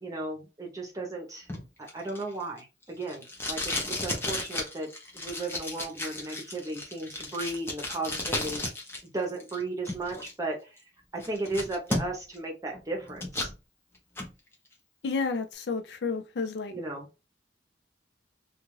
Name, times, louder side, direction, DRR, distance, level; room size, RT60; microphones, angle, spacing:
voice 1, 0.0-1.5 1.8-3.7 4.0-4.9 5.1-8.6 9.1-10.8 11.1-13.5 16.7-17.1, right 2 dB, 20° right, 0.8 m, -35 dB
Packing tape duct tape, 1.5-9.0 9.3-10.3 10.8-10.9 11.2-12.4 12.7-13.5 13.9-14.3, left 1 dB, 15° left, 0.7 m, -34 dB
voice 2, 15.0-16.8, left 4 dB, 65° left, 0.4 m, -31 dB
2.5 x 2.4 x 3.1 m
head